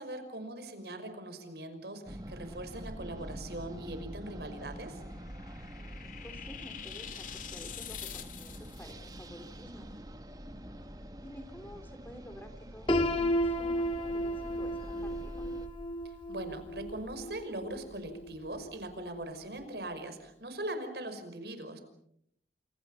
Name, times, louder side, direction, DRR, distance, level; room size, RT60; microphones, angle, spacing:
voice 1, 0.0-5.0 16.0-21.8, right 1 dB, 70° right, 8 dB, 5.6 m, -41 dB
sound 1, 2.0-15.7, equal, 20° right, 1.9 m, -46 dB
sound 2, 4.8-8.9, left 10 dB, 50° left, 2.2 m, -45 dB
voice 2, 6.2-9.9 11.2-15.5, equal, 10° left, 7 dB, 3.2 m, -50 dB
Piano, 12.9-18.7, equal, 30° left, 2.1 m, -33 dB
29.5 x 28.5 x 5.7 m, 0.73 s
head